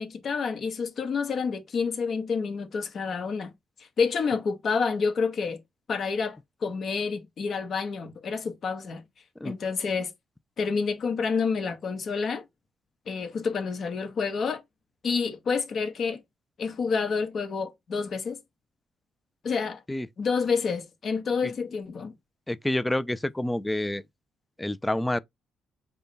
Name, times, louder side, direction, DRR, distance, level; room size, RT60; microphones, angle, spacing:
voice 1, 0.0-3.5 4.0-5.6 5.9-9.0 9.4-10.1 10.6-12.4 13.1-14.6 15.0-16.2 16.6-18.4 19.4-19.8 20.2-22.1, left 5 dB, 55° left, 1.0 m, -28 dB
voice 2, 22.5-24.0 24.6-25.2, left 1 dB, 10° left, 0.3 m, -28 dB
3.6 x 2.2 x 4.0 m
cardioid pair, 90°, 0 cm